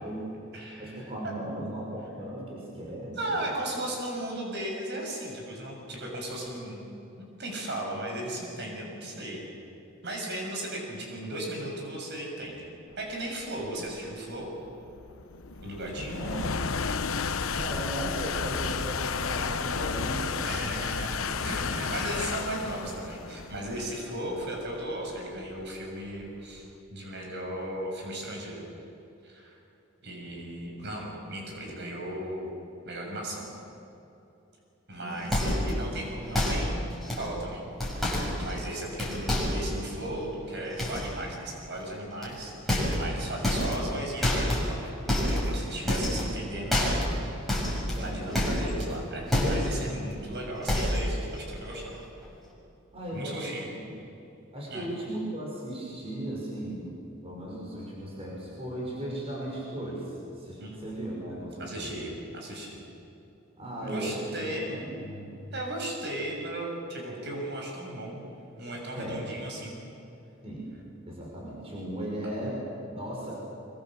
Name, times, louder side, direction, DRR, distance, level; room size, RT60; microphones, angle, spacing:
voice 1, 0.0-0.3 0.8-3.5 13.7-13.8 15.9-16.6 17.5-20.9 21.2-22.3 35.0-35.3 47.9-48.5 52.9-53.8 54.5-57.0 57.2-61.9 63.6-65.4 68.9-69.2 70.4-70.7 71.1-73.3, right 1 dB, 30° right, -4 dB, 6.0 m, -37 dB
voice 2, 0.5-1.1 3.1-6.8 7.2-9.5 10.0-12.7 13.0-14.5 15.6-16.2 20.4-26.7 26.9-28.6 29.2-29.6 30.0-32.5 32.9-33.6 34.9-37.6 38.4-47.4 48.0-51.9 53.1-53.7 54.7-54.9 60.6-60.8 61.6-62.8 63.8-64.7 65.5-68.2 68.6-69.8, right 1 dB, 55° right, 0 dB, 6.9 m, -36 dB
sound 1, 13.3-26.6, left 5 dB, 85° left, 0.9 m, -33 dB
sound 2, 35.3-35.8 36.3-36.7 37.0-37.3 37.8-38.7 39.0-39.7 40.8-41.1 42.2-42.4 42.7-43.2 43.4-43.9 44.2-44.7 45.1-45.6 45.9-46.4 46.7-47.2 47.5-48.9 49.3-49.8 50.1-50.2 50.6-51.1 51.4-51.7 52.0-52.1, left 1 dB, ahead, 7.5 m, -27 dB
25.5 x 24.0 x 7.5 m, 2.9 s
head